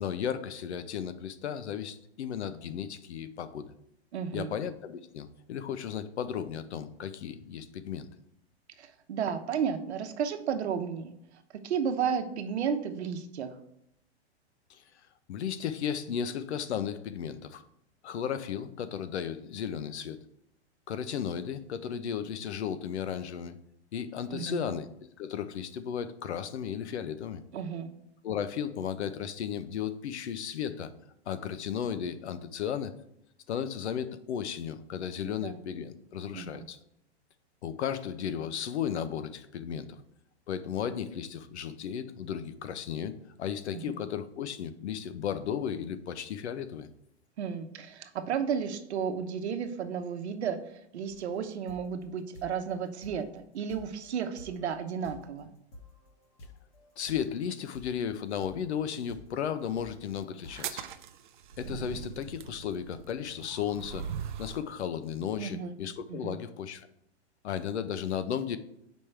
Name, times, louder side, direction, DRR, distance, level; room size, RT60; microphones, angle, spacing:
voice 1, 0.0-3.7 4.3-8.1 14.7-14.8 15.3-17.6 18.0-20.2 20.9-23.6 23.9-24.9 25.2-27.4 28.2-30.9 31.3-32.9 33.5-36.8 37.6-40.0 40.5-46.9 57.0-60.8 61.6-64.1 64.4-66.9 67.4-68.6, left 8 dB, 75° left, 12 dB, 0.7 m, -34 dB
voice 2, 4.1-4.5 8.8-11.1 11.6-13.5 24.3-24.7 27.5-27.9 35.4-35.6 36.3-36.7 43.7-43.9 47.4-50.6 50.9-55.5 65.4-65.7 66.1-66.4, right 7 dB, 70° right, 8 dB, 0.9 m, -33 dB
sound 1, 51.1-60.7, left 2 dB, 25° left, 1.0 m, -52 dB
sound 2, 60.5-64.7, right 8 dB, 45° right, 0.5 m, -40 dB
7.4 x 5.3 x 3.3 m, 0.76 s
hypercardioid pair, 175°, 34 cm